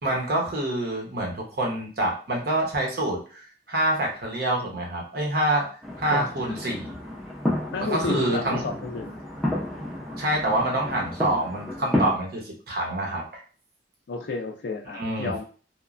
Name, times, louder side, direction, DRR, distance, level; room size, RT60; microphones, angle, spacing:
voice 1, 0.0-5.7 6.0-6.9 7.8-8.6 10.2-13.4 14.9-15.3, right 1 dB, 55° right, -1 dB, 0.8 m, -26 dB
sound 1, 5.8-12.1, left 1 dB, ahead, 0.5 m, -31 dB
voice 2, 6.1-6.5 7.7-9.1 14.1-15.5, left 4 dB, 70° left, 3 dB, 0.4 m, -31 dB
3.0 x 2.1 x 2.4 m, 0.40 s
head